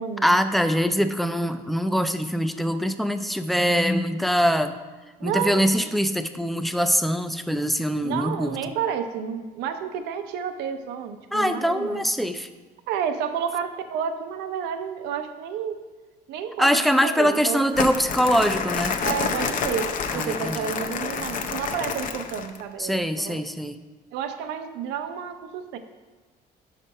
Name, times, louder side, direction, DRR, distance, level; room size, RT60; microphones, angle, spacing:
voice 1, 0.2-4.7 5.2-8.6 11.3-12.5 16.6-19.0 20.1-20.7 22.8-23.8, equal, ahead, 9 dB, 0.3 m, -23 dB
voice 2, 5.2-5.9 8.0-12.0 12.9-15.8 16.3-17.6 19.0-23.4 24.1-25.8, right 7 dB, 90° right, 8 dB, 0.6 m, -30 dB
Crumpling crinkling, 17.7-22.6, left 5 dB, 50° left, 0.6 m, -28 dB
5.3 x 5.0 x 5.5 m, 1.3 s
cardioid pair, 110°, 17 cm